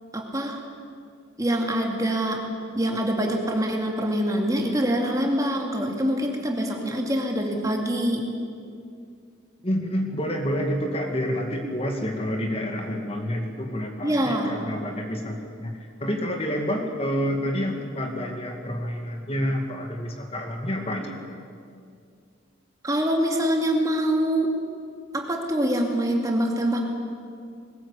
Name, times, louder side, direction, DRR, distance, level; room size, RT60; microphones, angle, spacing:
voice 1, 0.1-0.6 1.4-2.4 2.7-8.2 14.0-14.5 22.8-24.5 25.1-26.8, equal, 15° right, 1 dB, 2.4 m, -24 dB
voice 2, 9.6-21.2, equal, 30° left, 3 dB, 2.0 m, -28 dB
21.0 x 19.0 x 8.4 m, 2.3 s
head